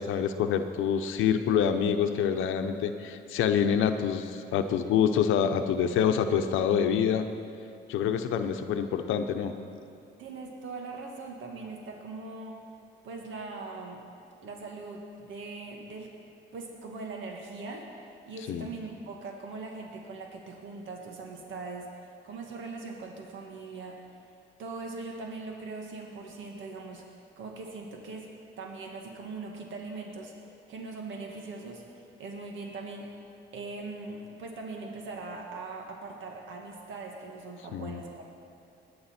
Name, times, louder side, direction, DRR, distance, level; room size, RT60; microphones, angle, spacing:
voice 1, 0.0-7.3 7.9-9.5 18.5-18.7 37.7-38.0, left 8 dB, 85° left, 7 dB, 0.8 m, -26 dB
voice 2, 10.2-12.6 13.0-14.0 14.4-16.1 16.5-24.0 24.6-28.3 28.6-30.3 30.7-33.1 33.5-38.2, right 3 dB, 75° right, 1 dB, 1.7 m, -41 dB
21.5 x 9.6 x 4.4 m, 2.5 s
cardioid pair, 90°, 20 cm